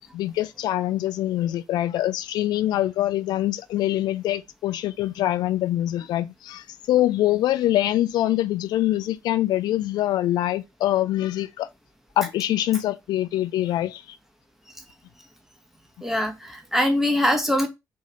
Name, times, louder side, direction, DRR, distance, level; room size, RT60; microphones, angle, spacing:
voice 1, 0.1-11.7 12.2-14.2, left 14 dB, 55° left, 0.3 m, -24 dB
voice 2, 16.0-17.7, left 1 dB, 5° right, 0.9 m, -22 dB
3.1 x 2.6 x 3.9 m
figure-of-eight pair, 45°, 9 cm